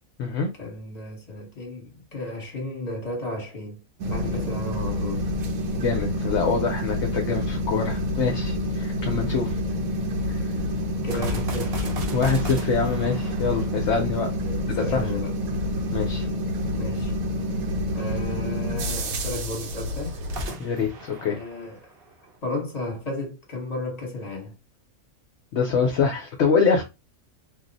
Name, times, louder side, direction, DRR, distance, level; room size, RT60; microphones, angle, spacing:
voice 1, 0.6-5.3 11.0-11.9 14.4-15.3 16.8-17.1 17.9-20.2 21.2-21.8 22.4-24.6, left 2 dB, 30° left, 1.0 m, -34 dB
sound 1, 4.0-20.4, left 1 dB, 90° right, 1.1 m, -28 dB
voice 2, 5.7-9.5 12.1-14.3 14.7-15.0 15.9-16.3 20.6-21.4 25.5-26.8, left 5 dB, 65° left, 0.8 m, -25 dB
sound 2, 11.1-14.5 20.2-22.3, right 1 dB, 55° right, 0.7 m, -35 dB
2.7 x 2.0 x 3.8 m
omnidirectional pair, 1.5 m